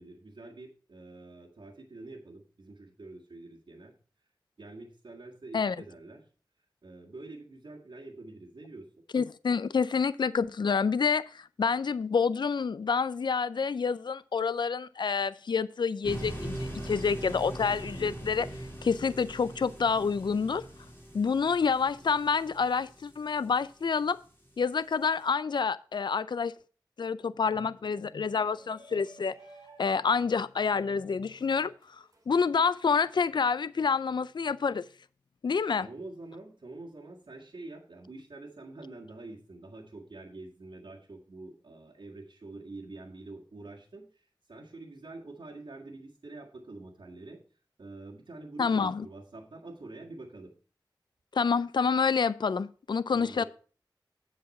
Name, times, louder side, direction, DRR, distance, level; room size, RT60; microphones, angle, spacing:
voice 1, 0.0-3.9 4.6-6.3 6.8-8.9 35.8-44.1 44.5-47.4 47.8-50.5 53.1-53.5, right 2 dB, 80° right, 1.7 m, -46 dB
voice 2, 9.1-18.5 18.8-20.6 21.1-24.2 24.6-26.5 27.0-29.3 29.8-34.9 35.4-35.9 48.6-49.1 51.3-53.4, left 5 dB, 65° left, 0.4 m, -28 dB
sound 1, 16.0-24.1, right 1 dB, 25° left, 3.7 m, -41 dB
Shout, 28.3-33.4, right 2 dB, 40° right, 3.7 m, -56 dB
7.9 x 7.7 x 4.2 m
wide cardioid pair, 60°, 8 cm